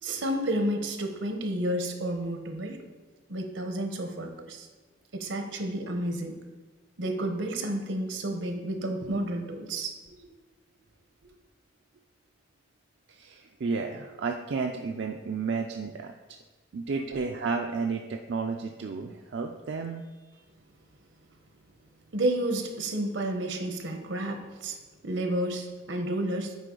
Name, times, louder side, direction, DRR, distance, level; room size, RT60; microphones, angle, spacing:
voice 1, 0.0-2.8 3.3-4.7 5.1-6.3 7.0-9.9 16.9-17.2 22.1-26.5, right 1 dB, 80° right, 4 dB, 1.0 m, -31 dB
voice 2, 13.1-16.1 16.7-20.0, right 4 dB, 65° right, 3 dB, 0.4 m, -32 dB
8.2 x 4.8 x 3.8 m, 1.2 s
head